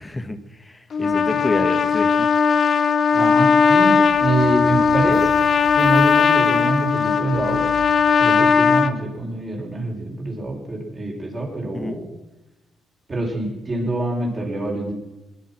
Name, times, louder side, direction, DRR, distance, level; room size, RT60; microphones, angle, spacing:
voice 1, 0.0-2.3 11.6-12.0, left 2 dB, 15° left, 9 dB, 1.4 m, -29 dB
Trumpet, 0.9-8.9, left 6 dB, 50° left, 0.9 m, -18 dB
voice 2, 1.0-1.4 3.1-5.4 5.7-7.6 8.2-12.1 13.1-14.9, right 2 dB, 35° right, -1 dB, 5.7 m, -25 dB
sound 1, 4.0-9.5, right 2 dB, 60° right, 5.7 m, -42 dB
20.0 x 11.0 x 5.9 m, 0.97 s
cardioid pair, 90°, 0 cm